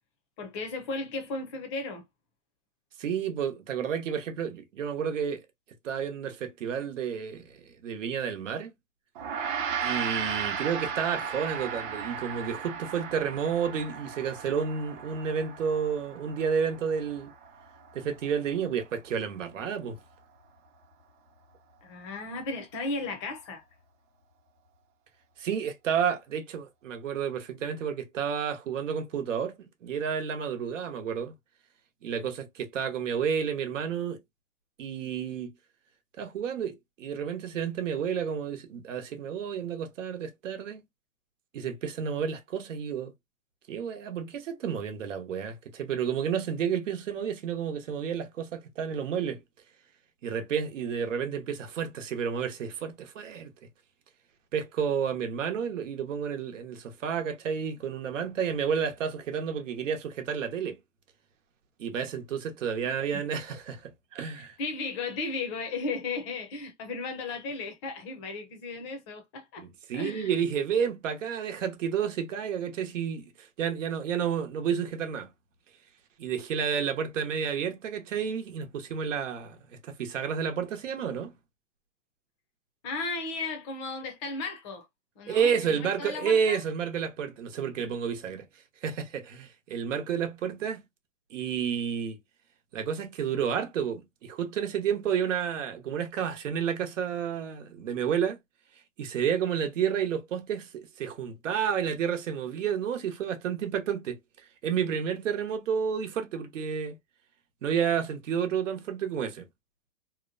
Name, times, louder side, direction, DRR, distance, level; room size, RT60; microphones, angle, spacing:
voice 1, 0.4-2.0 21.8-23.6 62.8-63.3 64.6-69.6 69.9-70.3 82.8-84.9 85.2-86.6, left 3 dB, 25° left, 0.6 m, -35 dB
voice 2, 3.0-5.4 5.8-8.7 9.8-17.3 17.9-20.0 25.4-31.3 32.0-34.2 34.8-35.5 36.2-40.8 41.5-43.1 43.7-49.4 50.2-53.5 54.5-60.8 61.8-64.5 69.6-75.3 76.2-79.6 79.8-81.3 85.3-88.4 88.8-90.8 91.3-92.2 92.7-98.4 99.0-104.2 104.6-107.0 107.6-109.4, right 7 dB, 80° right, 0.9 m, -31 dB
Gong, 9.2-18.7, right 7 dB, 40° right, 0.9 m, -36 dB
2.9 x 2.1 x 2.5 m
hypercardioid pair, 155°, 37 cm